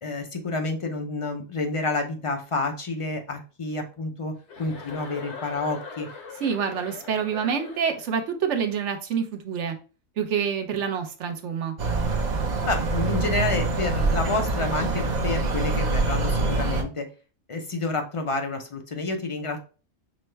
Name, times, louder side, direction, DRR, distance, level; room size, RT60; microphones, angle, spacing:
voice 1, 0.0-4.3 4.6-6.1 12.7-17.1 17.5-19.6, left 3 dB, 45° left, 5 dB, 0.4 m, -29 dB
Chuckle chortle, 4.5-8.2, left 4 dB, 65° left, 1.1 m, -41 dB
voice 2, 6.4-9.8 10.2-11.7, right 7 dB, 65° right, 6 dB, 1.0 m, -27 dB
sound 1, 11.8-16.8, right 3 dB, 45° right, 0.7 m, -25 dB
6.0 x 2.2 x 3.2 m, 0.35 s
omnidirectional pair, 1.3 m